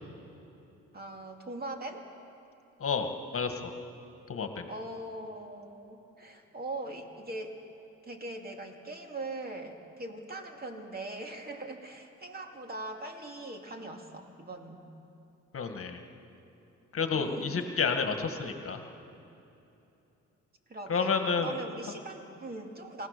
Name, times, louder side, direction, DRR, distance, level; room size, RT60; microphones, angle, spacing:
voice 1, 0.9-2.1 4.7-7.6 8.0-14.8 17.1-17.6 20.7-23.1, right 2 dB, 30° right, 3 dB, 2.4 m, -41 dB
voice 2, 2.8-3.7 4.3-4.7 15.5-16.0 16.9-18.8 20.9-21.5, left 5 dB, 45° left, 6 dB, 1.7 m, -30 dB
28.0 x 15.5 x 6.7 m, 2.9 s
cardioid pair, 90°, 30 cm